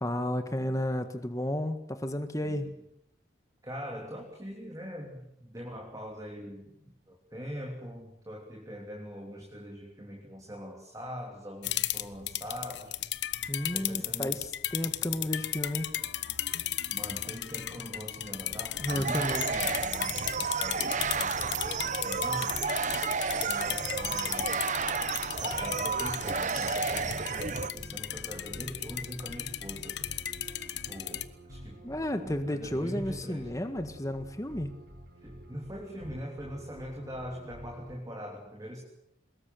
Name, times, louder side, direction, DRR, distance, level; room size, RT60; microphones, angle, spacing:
voice 1, 0.0-2.7 13.5-15.9 18.8-19.5 31.8-34.7, left 1 dB, 15° left, 8 dB, 1.6 m, -32 dB
voice 2, 2.4-2.8 3.6-13.0 13.7-14.4 16.9-22.6 23.4-24.6 25.4-30.0 30.7-31.8 32.1-33.5 35.2-38.8, equal, 20° right, 1 dB, 3.3 m, -42 dB
sound 1, 11.6-31.2, left 12 dB, 70° left, 1.1 m, -35 dB
sound 2, 18.5-37.9, equal, 55° right, 6.5 m, -48 dB
sound 3, 18.9-27.7, right 5 dB, 40° right, 0.9 m, -31 dB
23.5 x 21.0 x 7.8 m, 0.78 s
head